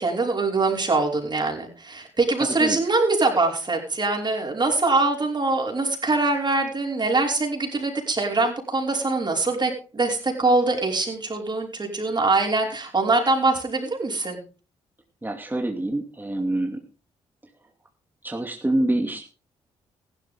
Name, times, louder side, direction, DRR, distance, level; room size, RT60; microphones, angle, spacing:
voice 1, 0.0-14.4, right 3 dB, 35° right, 1 dB, 5.5 m, -23 dB
voice 2, 2.4-2.8 15.2-16.8 18.2-19.3, right 1 dB, 15° right, 3 dB, 2.6 m, -26 dB
15.5 x 12.5 x 3.7 m, 0.35 s
hypercardioid pair, 45°, 13 cm